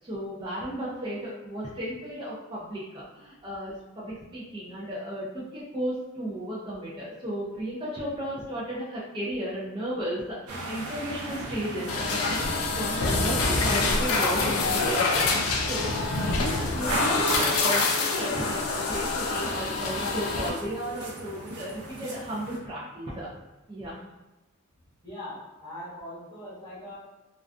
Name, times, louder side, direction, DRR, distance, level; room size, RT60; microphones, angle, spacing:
voice 1, 0.0-23.3 23.7-24.0, equal, 20° right, -8 dB, 0.4 m, -34 dB
sound 1, 10.5-22.6, right 2 dB, 75° right, 0.6 m, -37 dB
sound 2, 11.9-20.5, left 3 dB, 65° left, 0.3 m, -26 dB
voice 2, 25.0-27.0, left 1 dB, 20° left, -10 dB, 1.0 m, -41 dB
2.3 x 2.2 x 2.4 m, 1.0 s
head